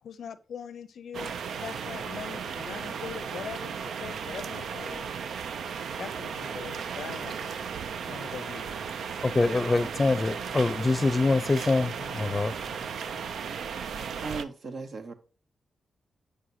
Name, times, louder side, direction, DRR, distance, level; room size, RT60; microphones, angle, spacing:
voice 1, 0.0-5.1 6.0-8.7, left 7 dB, 80° left, 0.5 m, -42 dB
sound 1, 1.1-14.4, right 6 dB, 85° right, 0.4 m, -35 dB
voice 2, 9.2-13.2, left 3 dB, 30° left, 0.5 m, -25 dB
voice 3, 14.2-15.1, right 4 dB, 70° right, 0.9 m, -37 dB
8.2 x 6.3 x 2.7 m
cardioid pair, 60°, 0 cm